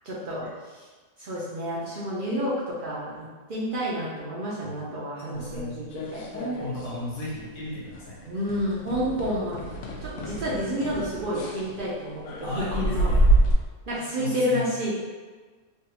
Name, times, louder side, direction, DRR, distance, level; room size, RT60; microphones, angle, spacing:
voice 1, 0.0-0.9 1.2-5.9 6.1-6.3 8.3-9.6 10.0-13.1 13.9-14.9, equal, 55° right, -8 dB, 0.6 m, -30 dB
voice 2, 5.2-5.7 6.3-8.3 12.4-13.2 14.2-14.6, left 2 dB, 70° left, -6 dB, 1.3 m, -34 dB
sound 1, 5.5-6.9 7.2-7.6 7.9-8.0 8.5-13.5, right 1 dB, 85° left, 1.0 m, -27 dB
3.4 x 2.3 x 2.8 m, 1.4 s
omnidirectional pair, 1.4 m